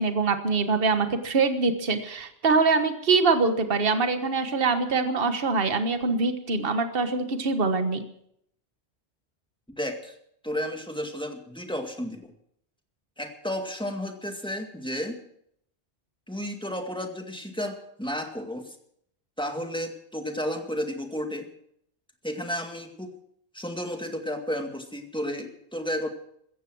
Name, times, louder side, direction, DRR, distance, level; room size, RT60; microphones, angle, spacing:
voice 1, 0.0-8.0, right 4 dB, 55° right, 8 dB, 1.6 m, -24 dB
voice 2, 9.8-10.1 10.4-12.3 13.2-15.2 16.3-18.8 19.4-21.5 22.2-23.1 23.5-26.1, equal, 5° left, 4 dB, 2.0 m, -32 dB
16.0 x 14.5 x 6.3 m, 0.70 s
omnidirectional pair, 1.1 m